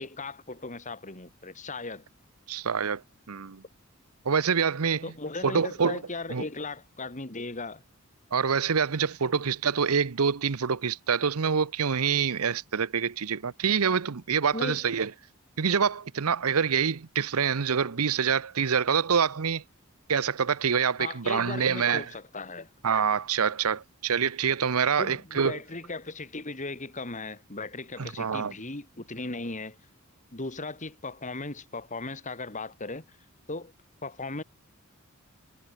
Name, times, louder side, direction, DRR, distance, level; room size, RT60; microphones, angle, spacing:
voice 1, 0.0-2.1 5.0-7.8 14.5-14.8 21.0-22.7 25.0-29.8 30.3-33.2 33.5-33.7 34.0-34.4, left 3 dB, 35° left, 2.7 m, -37 dB
voice 2, 2.5-3.0 3.3-3.6 4.2-5.1 5.4-6.0 6.3-6.4 8.3-15.1 15.6-19.6 20.1-22.1 22.8-25.6 28.0-28.5, right 6 dB, 85° right, 0.8 m, -26 dB
head